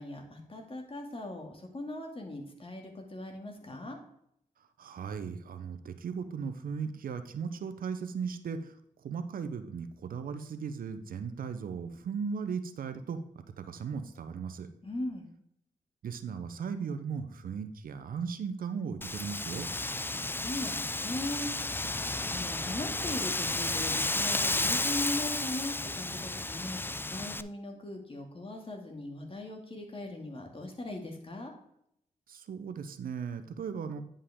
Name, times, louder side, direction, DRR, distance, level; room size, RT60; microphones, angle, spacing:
voice 1, 0.0-4.0 14.8-15.3 20.1-31.5, left 1 dB, 40° left, 2 dB, 2.3 m, -39 dB
voice 2, 4.8-8.8 9.0-14.7 16.0-19.7 32.3-34.0, right 6 dB, 85° right, 10 dB, 0.7 m, -37 dB
Wind, 19.0-27.4, left 2 dB, 15° left, 0.4 m, -32 dB
9.8 x 5.5 x 3.6 m, 0.72 s
cardioid pair, 50°, 14 cm